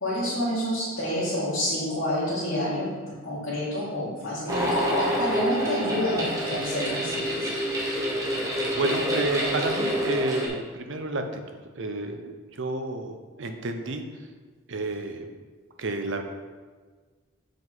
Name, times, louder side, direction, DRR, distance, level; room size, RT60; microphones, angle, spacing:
voice 1, 0.0-2.9 3.2-7.5, left 1 dB, 65° left, -11 dB, 2.1 m, -28 dB
sound 1, 4.5-10.5, equal, 15° right, 1.1 m, -27 dB
voice 2, 8.8-14.3 14.7-15.3 15.8-16.2, right 2 dB, 60° right, 5 dB, 0.7 m, -31 dB
7.5 x 4.9 x 3.9 m, 1.4 s
head